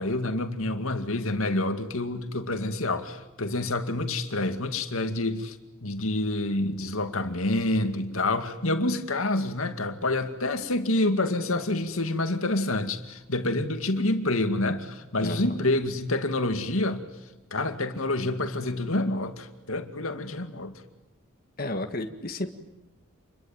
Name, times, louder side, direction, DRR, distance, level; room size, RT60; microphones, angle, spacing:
voice 1, 0.0-5.6 5.8-17.0 17.5-20.7, left 2 dB, 80° left, 2.3 m, -27 dB
voice 2, 15.2-15.6 21.6-22.5, left 1 dB, 45° left, 1.8 m, -32 dB
28.0 x 23.0 x 9.1 m
head